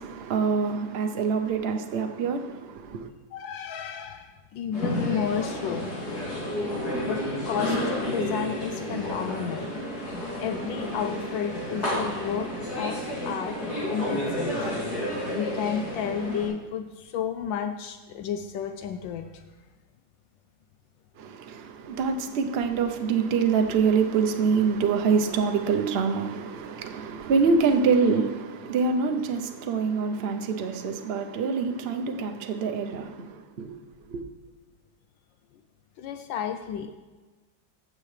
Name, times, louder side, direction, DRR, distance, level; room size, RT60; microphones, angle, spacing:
voice 1, 0.0-3.1 21.2-33.7 34.1-34.2, right 5 dB, 75° right, 0.5 m, -25 dB
voice 2, 3.3-6.0 7.1-9.7 10.4-13.6 13.9-14.7 15.3-19.4 36.0-36.9, left 8 dB, 80° left, 1.3 m, -32 dB
sound 1, 4.7-16.5, left 1 dB, 50° left, 3.2 m, -31 dB
15.5 x 6.7 x 3.2 m
omnidirectional pair, 2.1 m